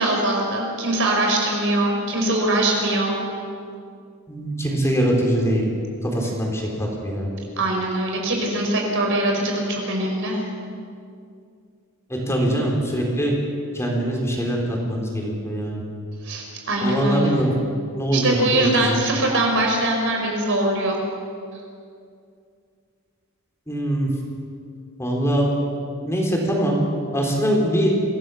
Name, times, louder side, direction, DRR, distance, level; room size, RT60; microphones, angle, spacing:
voice 1, 0.0-3.2 7.6-10.4 16.2-17.3 18.1-21.0, right 1 dB, 60° right, 0 dB, 5.2 m, -22 dB
voice 2, 4.3-5.7 6.0-7.3 12.1-13.3 13.7-15.8 16.8-17.5 17.9-19.0 23.7-24.1 25.0-25.5 26.0-26.8 27.1-27.9, equal, 10° left, -1 dB, 4.2 m, -23 dB
26.5 x 17.0 x 7.2 m, 2.3 s
head